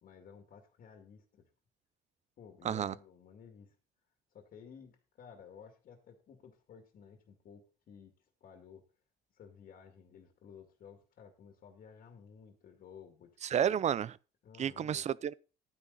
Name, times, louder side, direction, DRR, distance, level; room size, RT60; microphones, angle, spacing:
voice 1, 0.0-1.5 2.4-3.8 4.3-8.9 9.3-13.7 14.4-15.1, left 7 dB, 55° left, 2.3 m, -55 dB
voice 2, 13.4-14.2 14.6-15.3, right 9 dB, 40° right, 0.6 m, -31 dB
12.0 x 9.6 x 4.0 m
cardioid pair, 110°, 17 cm